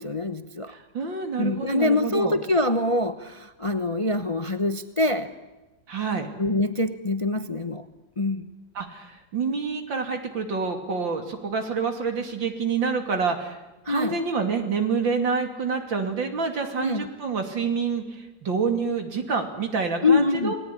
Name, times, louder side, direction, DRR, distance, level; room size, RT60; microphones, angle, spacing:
voice 1, 0.0-0.7 1.4-5.3 6.4-7.8 8.2-8.5 13.8-14.2 16.8-17.1 20.0-20.5, left 2 dB, 25° left, 9 dB, 0.8 m, -24 dB
voice 2, 0.7-2.4 5.9-6.3 8.8-13.6 13.9-20.6, right 5 dB, 85° right, 5 dB, 3.5 m, -27 dB
28.5 x 19.0 x 10.0 m, 1.1 s
omnidirectional pair, 2.0 m